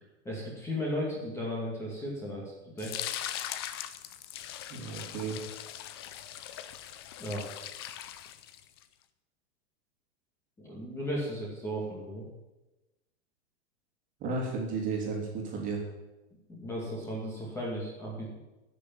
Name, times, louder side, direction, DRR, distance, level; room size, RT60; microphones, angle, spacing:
voice 1, 0.2-2.4 2.8-3.1 7.2-7.4 10.6-12.2 16.5-18.4, equal, 10° left, -4 dB, 2.4 m, -35 dB
sound 1, 2.8-8.8, left 11 dB, 25° left, 0.4 m, -40 dB
voice 2, 4.7-5.4 14.2-15.8, right 4 dB, 25° right, -1 dB, 2.9 m, -33 dB
13.0 x 6.9 x 9.0 m, 1.1 s
supercardioid pair, 170°, 34 cm